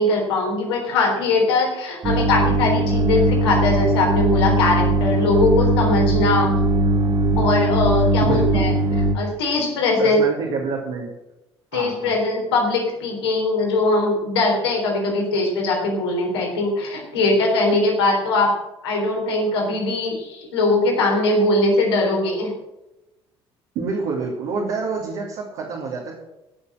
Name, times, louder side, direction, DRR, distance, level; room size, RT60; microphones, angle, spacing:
voice 1, 0.0-6.5 7.4-8.7 9.1-10.2 11.7-18.5 18.8-22.5, left 2 dB, 70° left, 0 dB, 3.8 m, -21 dB
sound 1, 2.0-9.1, right 2 dB, 35° right, 2.6 m, -19 dB
voice 2, 8.2-8.8 10.0-11.1 11.7-12.2 23.7-26.2, right 4 dB, 55° right, -2 dB, 2.8 m, -27 dB
16.5 x 7.1 x 6.5 m, 0.95 s
figure-of-eight pair, 55°, 14 cm